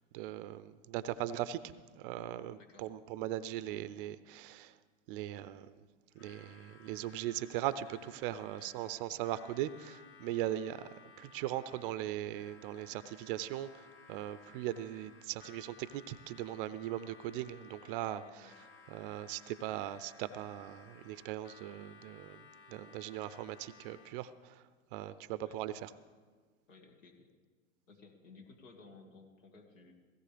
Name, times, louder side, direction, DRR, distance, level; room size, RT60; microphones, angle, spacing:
voice 1, 0.1-1.6 1.9-4.7 5.1-5.8 6.2-10.9 11.2-18.5 18.9-24.6 24.9-25.9, right 13 dB, 45° right, 15 dB, 0.6 m, -39 dB
voice 2, 2.6-2.9 8.6-8.7 18.2-18.6 25.4-25.6 26.7-27.3 27.9-29.9, left 3 dB, 80° left, 2 dB, 2.1 m, -57 dB
Harmonica, 6.1-24.4, left 4 dB, 30° left, 0.9 m, -59 dB
17.0 x 16.0 x 3.4 m, 1.5 s
hypercardioid pair, 110°, 38 cm